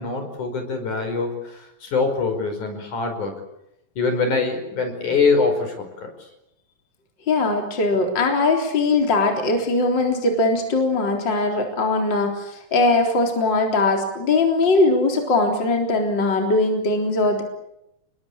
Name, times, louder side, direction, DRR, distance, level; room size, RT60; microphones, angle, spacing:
voice 1, 0.0-3.3 4.0-6.1, left 4 dB, 60° left, 6 dB, 6.6 m, -23 dB
voice 2, 7.3-17.4, left 3 dB, 30° left, 2 dB, 4.1 m, -20 dB
30.0 x 21.5 x 8.6 m, 0.82 s
omnidirectional pair, 4.0 m